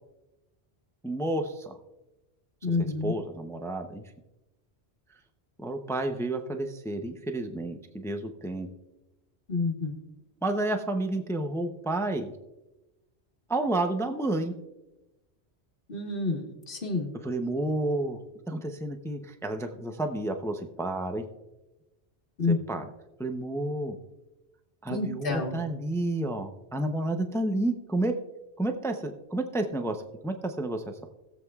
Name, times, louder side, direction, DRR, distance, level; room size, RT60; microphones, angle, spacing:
voice 1, 1.0-1.8 3.0-4.0 5.6-8.7 10.4-12.3 13.5-14.5 17.2-18.2 18.5-21.2 22.7-22.8 23.2-24.0 24.8-28.1 28.6-31.1, right 2 dB, 5° left, 6 dB, 0.5 m, -30 dB
voice 2, 2.6-3.1 9.5-9.9 15.9-17.1 22.4-22.6 24.9-25.6, left 3 dB, 55° left, -1 dB, 1.7 m, -29 dB
20.0 x 7.7 x 2.4 m, 1.0 s
omnidirectional pair, 1.1 m